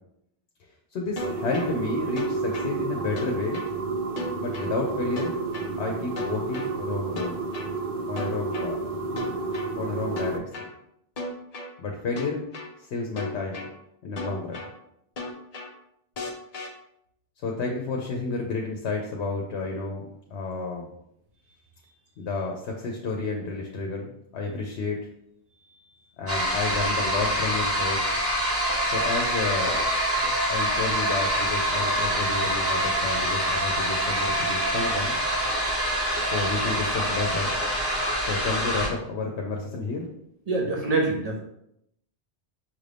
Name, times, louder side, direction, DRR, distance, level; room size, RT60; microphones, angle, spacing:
voice 1, 0.9-3.7 4.4-5.3 5.8-7.4 8.1-8.8 9.7-10.4 11.8-12.4 12.8-13.7 14.0-14.6 17.4-20.0 20.3-20.9 22.2-25.1 26.2-28.1 28.9-29.8 30.5-35.2 36.2-37.5 38.2-40.1, left 3 dB, 80° left, 1 dB, 0.9 m, -31 dB
sound 1, 1.2-1.7 2.2-2.7 3.2-3.7 4.2-4.7 5.2-5.7 6.2-6.7 7.2-7.7 8.2-8.7 9.2-9.7 10.2-10.7 11.2-11.7 12.2-12.7 13.2-13.7 14.2-14.7 15.2-15.7 16.2-16.7, left 3 dB, 45° left, 0.6 m, -34 dB
sound 2, 1.2-10.4, right 4 dB, 60° right, 0.7 m, -31 dB
sound 3, 26.3-38.9, equal, 15° right, 1.1 m, -25 dB
voice 2, 40.5-41.4, right 3 dB, 35° right, 0 dB, 0.9 m, -25 dB
6.0 x 2.5 x 3.3 m, 0.78 s
omnidirectional pair, 1.1 m